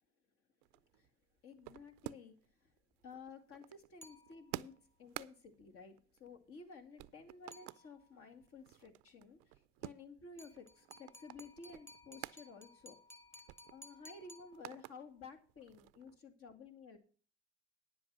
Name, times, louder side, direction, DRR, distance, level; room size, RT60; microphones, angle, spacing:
sound 1, 0.6-2.5 2.8-6.7 7.0-7.9 8.3-12.4 12.8-12.9 13.2-15.0 15.4-16.2, right 21 dB, 75° right, 0.5 m, -51 dB
voice 1, 1.4-2.3 2.6-2.7 3.0-13.0 13.3-13.4 13.7-17.0, left 4 dB, 50° left, 7 dB, 2.3 m, -54 dB
sound 2, 4.0-4.8 7.5-8.3 10.4-15.1, left 1 dB, 10° left, 1.5 m, -59 dB
10.0 x 7.7 x 6.1 m, 0.43 s
supercardioid pair, 100°, 29 cm